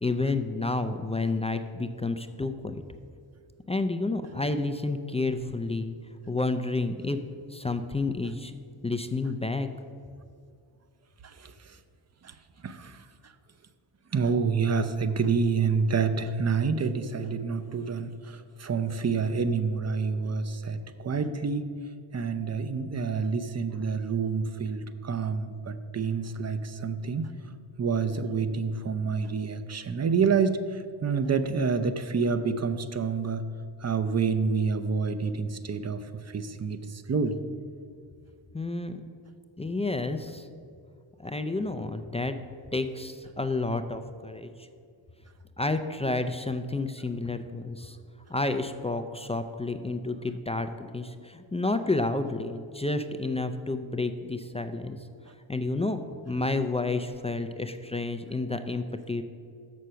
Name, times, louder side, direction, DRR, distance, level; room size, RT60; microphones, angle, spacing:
voice 1, 0.0-2.8 3.7-5.9 6.3-7.2 7.5-8.5 8.8-9.7 38.5-39.0 39.6-40.5 41.2-42.4 42.7-44.7 45.6-48.0 48.3-55.0 55.5-56.0 56.3-59.2, left 3 dB, 15° left, 8 dB, 0.3 m, -30 dB
voice 2, 12.6-13.0 14.1-21.7 22.1-27.3 27.8-33.4 33.8-36.0 36.3-37.4, right 5 dB, 35° right, 11 dB, 0.6 m, -28 dB
6.6 x 6.3 x 5.6 m, 2.3 s
cardioid pair, 55°, 49 cm